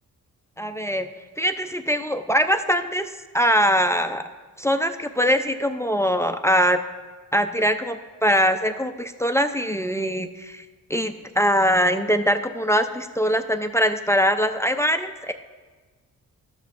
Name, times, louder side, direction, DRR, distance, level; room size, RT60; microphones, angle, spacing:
voice 1, 0.6-1.1 1.4-3.1 3.3-4.2 4.6-6.8 7.3-10.6 10.9-15.3, equal, 10° left, 9 dB, 0.3 m, -22 dB
13.0 x 8.1 x 2.5 m, 1.4 s
cardioid pair, 75°, 33 cm